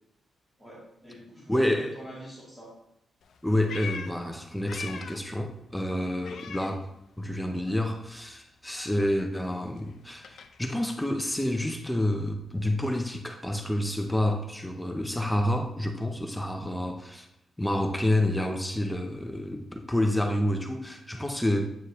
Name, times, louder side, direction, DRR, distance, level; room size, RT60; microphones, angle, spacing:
voice 1, 0.6-2.7, equal, 10° right, -7 dB, 2.4 m, -45 dB
voice 2, 1.5-1.9 3.4-6.9 7.2-17.3 17.6-21.7, left 1 dB, 5° left, 4 dB, 0.5 m, -28 dB
Meow, 3.2-5.4 5.7-7.4 7.6-11.8, left 6 dB, 70° left, 0.5 m, -44 dB
8.0 x 4.8 x 3.0 m, 0.78 s
wide cardioid pair, 155°, 0 cm